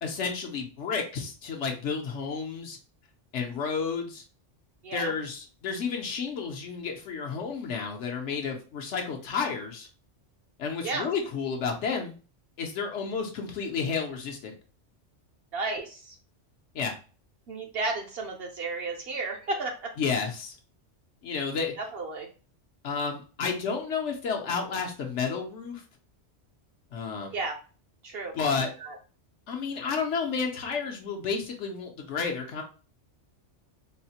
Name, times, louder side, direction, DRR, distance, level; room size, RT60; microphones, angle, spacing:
voice 1, 0.0-2.8 3.3-4.2 4.9-9.9 10.6-12.2 12.6-14.5 16.7-16.9 20.0-20.6 21.2-21.7 22.8-25.8 26.9-27.4 28.3-28.7 29.5-32.6, left 5 dB, 75° left, 2 dB, 1.0 m, -31 dB
voice 2, 15.5-16.2 17.5-19.9 21.8-22.3 27.3-27.6 28.0-29.0, right 3 dB, 65° right, 1 dB, 0.7 m, -33 dB
3.8 x 2.1 x 2.8 m, 0.36 s
omnidirectional pair, 1.2 m